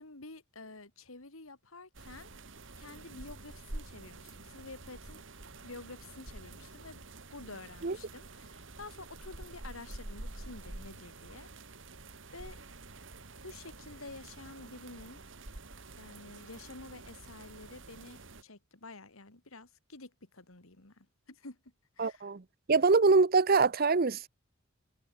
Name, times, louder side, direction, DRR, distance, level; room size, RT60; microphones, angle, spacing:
voice 1, 0.0-2.3 2.8-5.2 5.6-7.0 7.3-11.5 12.3-12.6 13.4-15.2 15.9-21.6 22.0-22.3, left 3 dB, 90° left, 3.0 m, -49 dB
sound 1, 1.9-18.4, right 2 dB, 65° right, 2.4 m, -48 dB
voice 2, 22.0-22.4 22.7-24.3, right 4 dB, 45° right, 0.7 m, -24 dB
head